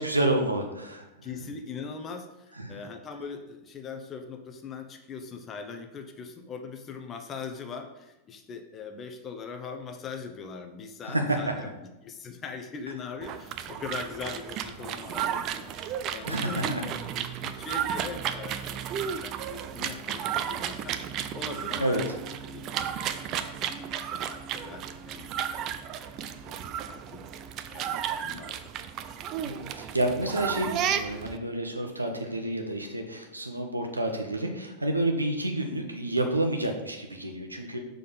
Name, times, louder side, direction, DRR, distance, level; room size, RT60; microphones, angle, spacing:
voice 1, 0.0-1.0 2.6-2.8 11.1-11.2 11.6-11.7 16.2-16.8 21.8-22.0 29.4-37.8, right 1 dB, 85° right, 3 dB, 0.9 m, -29 dB
voice 2, 1.2-21.0 21.3-22.9 23.6-25.3 25.5-27.2 27.7-28.6, left 5 dB, 25° left, 5 dB, 0.9 m, -41 dB
sound 1, 13.2-31.4, right 9 dB, 35° right, 0.5 m, -33 dB
6.8 x 3.9 x 5.3 m, 0.98 s
figure-of-eight pair, 90°, 0 cm